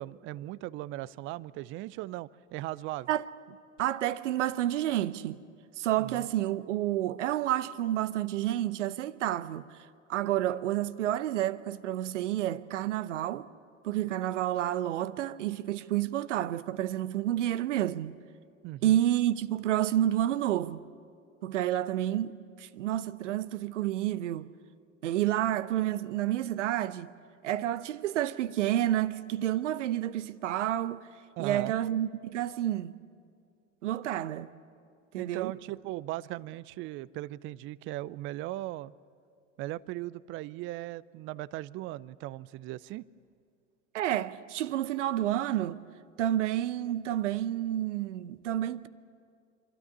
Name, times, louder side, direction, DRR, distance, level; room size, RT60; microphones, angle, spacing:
voice 1, 0.0-3.1 6.0-6.3 18.6-19.0 31.4-31.7 35.2-38.9 39.6-43.1, right 16 dB, 35° right, 0.5 m, -38 dB
voice 2, 3.8-5.4 5.8-9.7 10.1-13.5 13.8-18.1 18.8-20.8 21.4-24.5 25.0-27.1 27.4-31.0 31.4-32.9 33.8-34.5 35.1-35.5 43.9-45.8 46.2-48.9, right 12 dB, 70° right, 0.8 m, -29 dB
26.0 x 13.0 x 9.6 m
hypercardioid pair, 90°, 38 cm